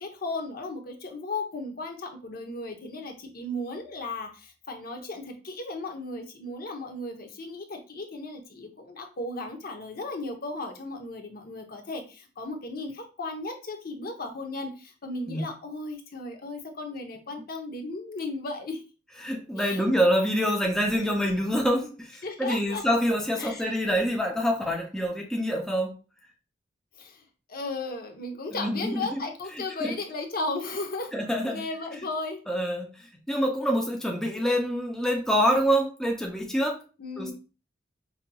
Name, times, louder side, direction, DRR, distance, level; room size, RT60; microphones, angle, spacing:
voice 1, 0.0-18.8 19.6-19.8 22.2-22.8 23.4-23.7 27.0-31.1 31.4-32.4 37.0-37.3, left 2 dB, 55° left, 0.8 m, -35 dB
voice 2, 19.2-25.9 28.5-29.2 29.8-29.9 31.1-31.6 32.5-36.8 37.2-37.3, equal, 5° left, 0.5 m, -26 dB
5.2 x 2.8 x 2.2 m
head